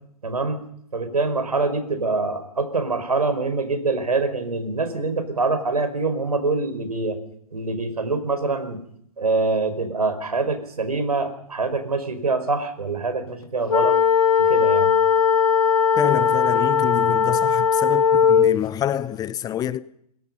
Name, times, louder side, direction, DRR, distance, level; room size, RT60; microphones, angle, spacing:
voice 1, 0.2-0.6 0.9-7.2 7.5-8.8 9.2-14.0 14.4-14.9, right 3 dB, 75° right, 4.9 m, -25 dB
sound 1, 13.7-18.6, left 6 dB, 65° left, 1.9 m, -18 dB
voice 2, 15.9-19.8, left 11 dB, 20° left, 0.8 m, -27 dB
26.5 x 22.0 x 5.5 m
figure-of-eight pair, 110°, 20 cm